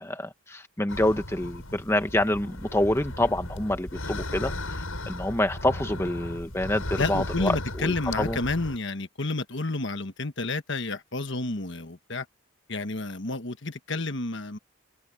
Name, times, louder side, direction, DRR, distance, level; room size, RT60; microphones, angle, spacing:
voice 1, 0.0-8.4, left 1 dB, 10° left, 1.0 m, -27 dB
sound 1, 0.9-8.8, left 1 dB, 75° left, 7.7 m, -36 dB
voice 2, 7.0-12.2 12.7-14.6, left 2 dB, 55° left, 1.4 m, -30 dB
head